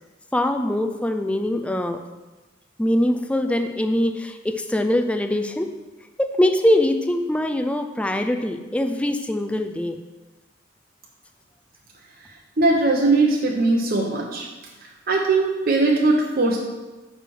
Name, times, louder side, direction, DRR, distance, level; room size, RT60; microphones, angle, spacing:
voice 1, 0.3-2.0 2.8-5.7 6.2-10.0, left 1 dB, 5° left, 6 dB, 0.4 m, -22 dB
voice 2, 12.6-14.5 14.8-16.6, right 2 dB, 50° right, -1 dB, 0.9 m, -20 dB
9.1 x 3.4 x 6.1 m, 1.2 s
head